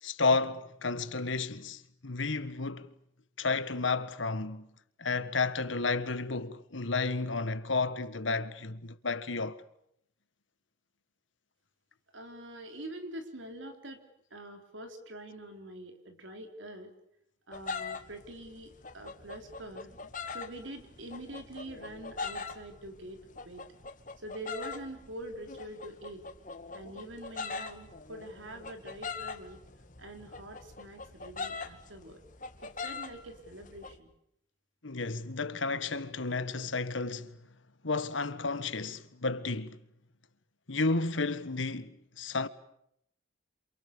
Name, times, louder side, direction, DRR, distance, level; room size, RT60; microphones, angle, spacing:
voice 1, 0.0-2.9 3.4-4.7 5.0-9.6 34.8-37.4 37.8-39.8 40.7-42.5, left 3 dB, 90° left, 1.6 m, -32 dB
voice 2, 12.1-14.0 14.3-16.9 17.5-19.9 20.3-23.7 24.2-26.3 26.7-29.6 30.0-32.2 32.6-34.1, right 1 dB, 85° right, 4.0 m, -45 dB
sound 1, 17.5-34.0, left 4 dB, 45° left, 2.2 m, -42 dB
28.5 x 27.5 x 7.0 m
head